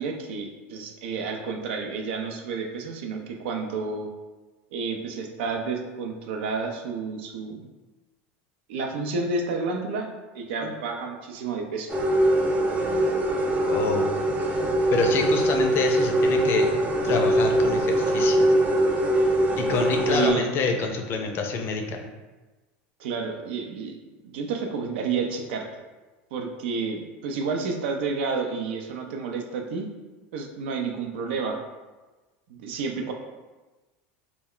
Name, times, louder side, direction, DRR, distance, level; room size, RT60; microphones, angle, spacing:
voice 1, 0.0-4.1 4.7-7.7 8.7-10.1 10.3-11.9 20.1-20.5 23.0-24.0 24.2-25.7 26.3-29.9 30.3-31.6 32.5-33.1, right 4 dB, 80° right, 3 dB, 0.4 m, -30 dB
sound 1, 11.9-20.3, right 1 dB, 25° right, 0.4 m, -22 dB
voice 2, 13.6-14.1 14.9-16.7 17.0-18.5 19.6-22.1, left 4 dB, 40° left, 3 dB, 0.4 m, -27 dB
2.3 x 2.1 x 3.6 m, 1.2 s
supercardioid pair, 120°, 6 cm